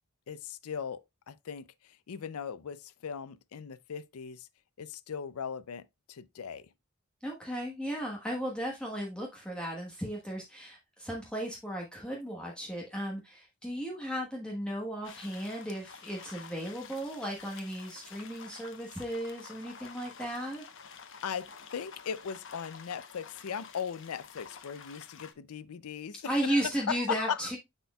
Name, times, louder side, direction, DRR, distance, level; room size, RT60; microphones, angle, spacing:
voice 1, 0.3-4.5 4.8-5.8 6.1-6.7 21.2-26.6 26.9-27.5, left 7 dB, 90° left, 0.5 m, -38 dB
voice 2, 7.2-20.6 26.2-27.6, right 1 dB, 5° left, 1.2 m, -35 dB
sound 1, 15.0-25.3, left 6 dB, 60° left, 0.9 m, -50 dB
9.9 x 4.4 x 2.3 m
head